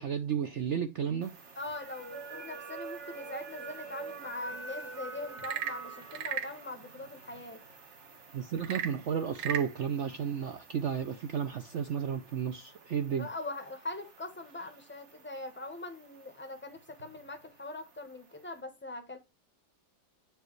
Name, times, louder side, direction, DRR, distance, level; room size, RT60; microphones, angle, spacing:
voice 1, 0.0-1.3 8.3-13.3, right 8 dB, 70° right, 0.6 m, -32 dB
sound 1, 1.2-18.6, right 4 dB, 45° right, 1.4 m, -48 dB
voice 2, 1.6-7.6 13.2-19.2, left 2 dB, 10° left, 0.7 m, -42 dB
Frog / Percussion / Wood, 5.3-6.6 8.6-9.7, right 8 dB, 90° right, 1.5 m, -35 dB
8.9 x 4.6 x 3.1 m
omnidirectional pair, 1.9 m